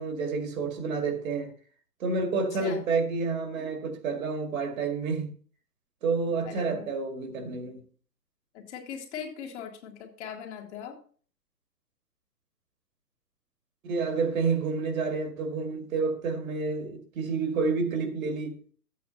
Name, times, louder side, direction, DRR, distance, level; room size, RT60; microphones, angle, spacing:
voice 1, 0.0-1.5 2.0-5.3 6.0-7.8 13.8-18.7, right 4 dB, 55° right, 2.1 m, -29 dB
voice 2, 6.5-6.9 8.5-11.0, left 8 dB, 45° left, 2.1 m, -40 dB
12.5 x 8.6 x 2.8 m
figure-of-eight pair, 130°, 50 cm